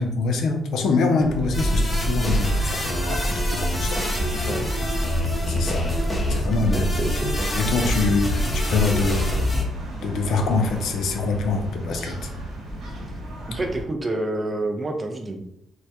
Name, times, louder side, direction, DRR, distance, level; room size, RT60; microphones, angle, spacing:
voice 1, 0.0-4.5 5.5-5.9 6.3-7.1 7.5-9.5 10.0-12.3, left 3 dB, 70° left, 4 dB, 0.4 m, -25 dB
sound 1, 1.2-13.9, equal, 75° right, 0.9 m, -35 dB
sound 2, 1.5-9.6, equal, 20° left, 0.6 m, -24 dB
voice 2, 4.3-4.8 6.7-7.3 13.5-15.4, right 2 dB, 25° right, 4 dB, 0.4 m, -28 dB
2.1 x 2.1 x 2.7 m, 0.80 s
cardioid pair, 90°, 0 cm